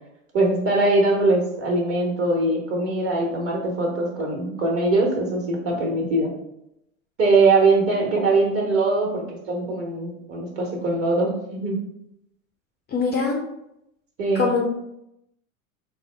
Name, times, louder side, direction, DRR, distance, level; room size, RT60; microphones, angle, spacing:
voice 1, 0.3-6.3 7.2-11.8 14.2-14.5, right 2 dB, 35° right, -1 dB, 1.3 m, -22 dB
voice 2, 12.9-13.5 14.3-14.6, left 5 dB, 25° left, 0 dB, 0.5 m, -22 dB
4.3 x 2.1 x 3.3 m, 0.81 s
figure-of-eight pair, 80°, 41 cm